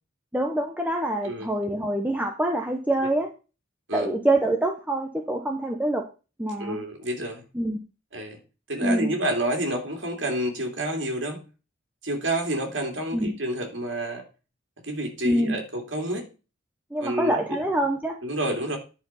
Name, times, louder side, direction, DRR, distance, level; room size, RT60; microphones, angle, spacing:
voice 1, 0.3-3.3 3.9-6.1 6.4-6.8 7.5-7.8 8.8-9.1 13.1-13.3 15.2-15.6 16.9-18.2, right 1 dB, 10° right, 2 dB, 0.8 m, -25 dB
voice 2, 6.6-7.4 8.1-8.4 8.7-11.4 12.0-14.2 14.8-16.3 17.0-17.6 18.2-18.8, right 1 dB, 65° right, 2 dB, 2.6 m, -29 dB
10.5 x 4.5 x 5.6 m, 0.33 s
head